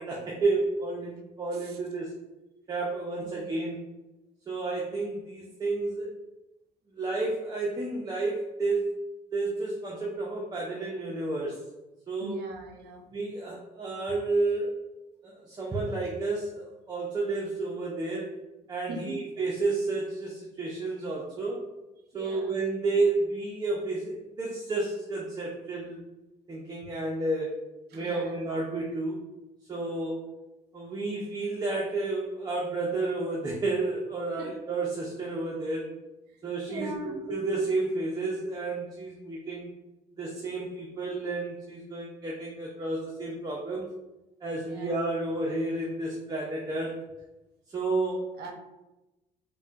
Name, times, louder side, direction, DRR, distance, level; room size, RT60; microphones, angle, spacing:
voice 1, 0.0-2.1 2.7-3.8 4.5-6.1 7.0-8.8 9.3-11.6 12.1-12.4 13.1-14.7 15.2-18.3 18.7-21.6 22.1-26.0 26.5-27.6 27.9-29.2 29.7-30.3 30.7-35.9 36.4-39.7 40.2-43.8 44.4-47.0 47.7-48.3, right 3 dB, 25° right, -3 dB, 0.5 m, -31 dB
voice 2, 12.2-13.1 18.9-19.3 22.1-22.6 27.9-28.4 34.4-34.6 36.3-36.4 36.7-37.2 44.6-45.0 48.4-48.5, right 2 dB, 70° right, 3 dB, 0.6 m, -40 dB
4.0 x 2.2 x 2.3 m, 1.0 s
cardioid pair, 110°, 17 cm